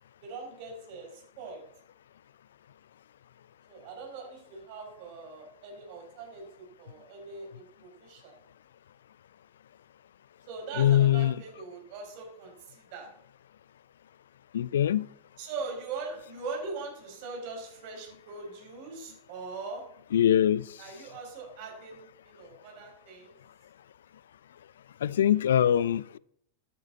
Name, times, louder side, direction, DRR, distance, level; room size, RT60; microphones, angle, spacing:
voice 1, 0.2-1.6 3.7-8.3 10.5-13.1 15.4-19.8 20.8-23.4, right 4 dB, 45° right, 5.5 m, -41 dB
voice 2, 10.8-11.4 14.5-15.1 20.1-20.6 25.0-26.2, left 10 dB, 60° left, 0.4 m, -23 dB
14.0 x 12.5 x 4.0 m
figure-of-eight pair, 90°, 0 cm